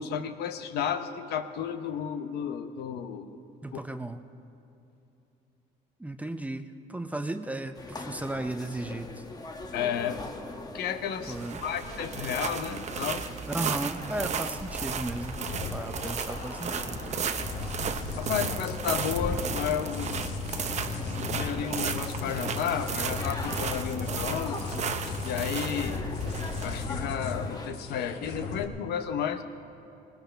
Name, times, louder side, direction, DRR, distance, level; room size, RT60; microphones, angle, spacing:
voice 1, 0.0-3.4 3.7-3.8 9.7-13.3 18.2-20.2 20.7-20.8 21.2-24.6 25.2-26.0 26.6-29.4, left 8 dB, 70° left, 9 dB, 0.9 m, -32 dB
voice 2, 3.6-4.2 6.0-9.2 11.3-11.6 13.5-15.4 15.7-17.0, right 1 dB, 10° right, 8 dB, 0.6 m, -35 dB
sound 1, 7.7-27.7, left 3 dB, 25° left, 1.2 m, -40 dB
sound 2, 11.2-28.1, right 7 dB, 40° right, 0.8 m, -35 dB
sound 3, 15.4-28.6, left 4 dB, 90° left, 1.2 m, -36 dB
20.0 x 19.0 x 3.4 m, 2.8 s
cardioid pair, 110°, 17 cm